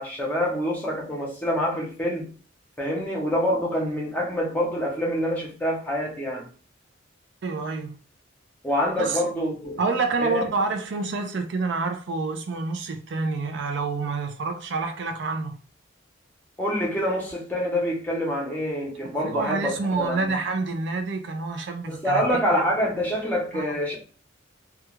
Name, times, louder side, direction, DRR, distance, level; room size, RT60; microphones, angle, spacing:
voice 1, 0.0-2.3 2.8-6.5 8.6-9.8 10.2-10.4 16.6-20.3 21.9-24.0, equal, 10° left, 0.7 m, -26 dB
voice 2, 7.4-7.9 9.0-9.2 9.8-15.6 19.2-22.2 23.5-23.8, right 3 dB, 60° right, 0.4 m, -28 dB
2.3 x 2.2 x 3.0 m
head